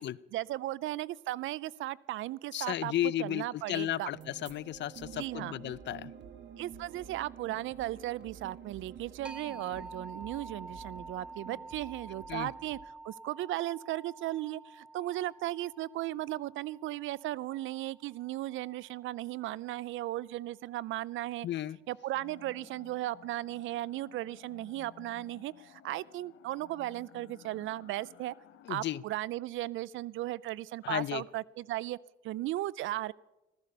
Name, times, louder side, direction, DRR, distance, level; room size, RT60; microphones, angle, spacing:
voice 1, 0.3-2.9 3.2-4.1 5.1-5.6 6.6-12.8 13.0-21.5 21.9-28.3 28.7-32.0 32.2-33.1, right 15 dB, 80° right, 23 dB, 0.5 m, -36 dB
voice 2, 2.5-6.1 9.7-9.9 12.3-12.5 21.4-21.8 28.7-29.0 30.8-31.2, left 13 dB, 65° left, 22 dB, 0.5 m, -34 dB
sound 1, 4.1-12.8, right 7 dB, 65° right, 1.7 m, -50 dB
sound 2, 9.2-18.6, right 3 dB, 5° right, 1.1 m, -49 dB
sound 3, 22.1-29.0, left 11 dB, 85° left, 0.9 m, -56 dB
15.0 x 14.0 x 5.4 m, 1.0 s
cardioid pair, 90°, 20 cm